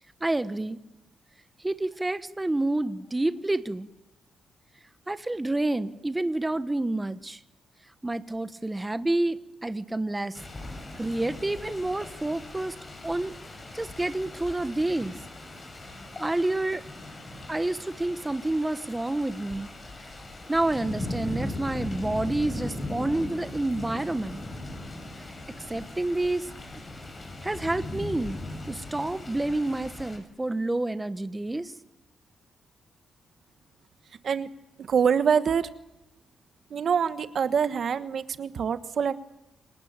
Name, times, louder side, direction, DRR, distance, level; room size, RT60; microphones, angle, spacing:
voice 1, 0.2-0.8 1.6-3.9 5.1-7.4 8.0-10.4 10.9-12.8 13.0-13.3 13.7-15.2 16.2-16.8 17.5-19.7 20.0-20.1 20.5-24.4 25.2-25.3 25.7-26.5 27.4-28.4 28.7-31.7, right 2 dB, 15° right, 12 dB, 1.2 m, -29 dB
sound 1, 10.3-30.2, left 2 dB, 30° left, 7.5 m, -39 dB
voice 2, 34.8-35.7 36.7-39.1, right 7 dB, 55° right, 12 dB, 1.3 m, -25 dB
28.5 x 19.0 x 8.9 m, 0.93 s
cardioid pair, 100°, 0 cm